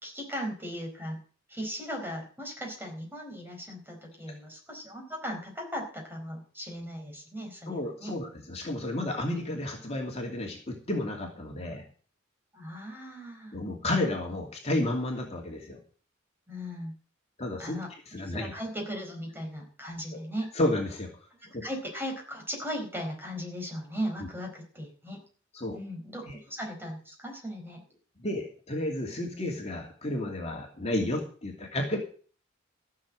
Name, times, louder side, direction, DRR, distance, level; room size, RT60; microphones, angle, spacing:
voice 1, 0.0-1.2 1.5-8.1 12.5-13.6 16.5-16.9 17.6-20.5 21.6-25.2 25.7-27.8, equal, 10° right, 1 dB, 4.6 m, -37 dB
voice 2, 7.7-11.9 13.5-15.8 17.4-17.8 18.1-18.5 20.1-20.2 20.5-21.1 21.5-21.6 25.5-25.8 26.3-26.4 28.2-32.0, left 1 dB, 35° left, 0 dB, 2.6 m, -31 dB
15.0 x 6.9 x 7.7 m, 0.42 s
head